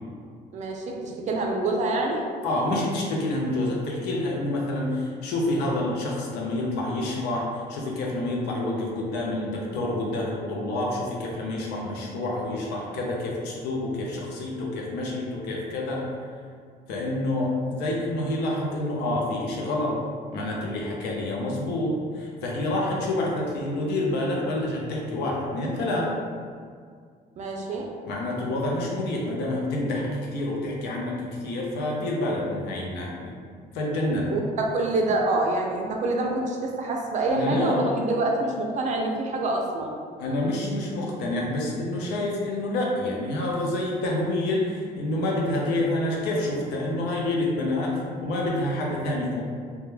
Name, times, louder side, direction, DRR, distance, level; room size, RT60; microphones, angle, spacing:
voice 1, 0.5-2.3 27.4-27.9 34.3-40.0, right 2 dB, 45° right, 1 dB, 0.4 m, -26 dB
voice 2, 2.4-16.1 16.9-20.0 20.3-26.1 28.1-33.3 33.7-34.3 37.3-37.8 40.2-49.4, left 1 dB, 80° left, -2 dB, 0.6 m, -28 dB
2.2 x 2.1 x 3.1 m, 2.1 s
cardioid pair, 110°, 17 cm